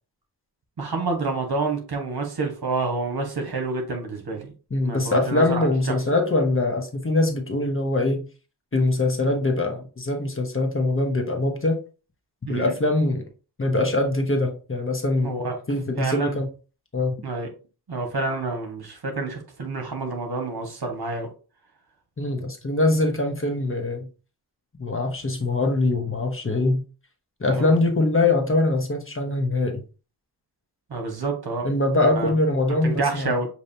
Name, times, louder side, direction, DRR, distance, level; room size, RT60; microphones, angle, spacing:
voice 1, 0.8-4.5 4.8-6.0 12.5-12.7 15.2-15.6 16.0-16.3 17.2-17.5 17.9-21.3 27.5-27.7 30.9-31.6 32.0-32.3 32.8-33.5, right 3 dB, 65° right, 1.5 m, -28 dB
voice 2, 4.7-8.2 8.7-11.8 12.5-13.2 13.6-15.4 15.7-16.5 16.9-17.2 22.2-24.1 24.8-26.8 27.4-29.8 31.6-33.4, left 2 dB, 30° left, 1.0 m, -23 dB
6.6 x 2.9 x 2.8 m
wide cardioid pair, 100°, 40 cm